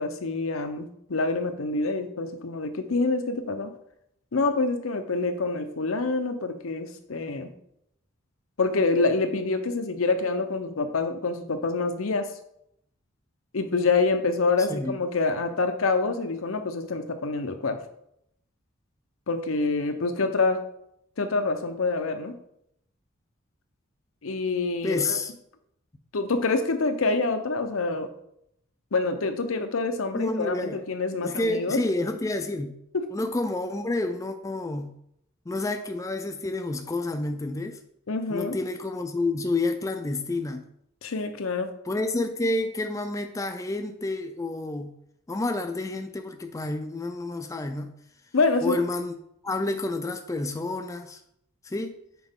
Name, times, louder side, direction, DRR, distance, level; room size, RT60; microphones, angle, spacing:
voice 1, 0.0-3.7 4.3-7.5 8.6-12.3 13.5-17.8 19.3-20.6 21.2-22.4 24.2-25.2 26.1-28.1 28.9-31.8 32.9-33.1 38.1-38.6 41.0-41.7 48.3-48.8, left 3 dB, 85° left, 8 dB, 0.7 m, -26 dB
voice 2, 24.8-25.3 30.1-30.8 31.2-32.7 33.1-34.9 35.5-37.8 38.3-40.6 41.9-44.9 45.3-47.9 48.6-49.1 49.4-51.2 51.6-51.9, left 2 dB, 15° left, 6 dB, 0.4 m, -29 dB
6.0 x 4.4 x 3.7 m, 0.74 s
head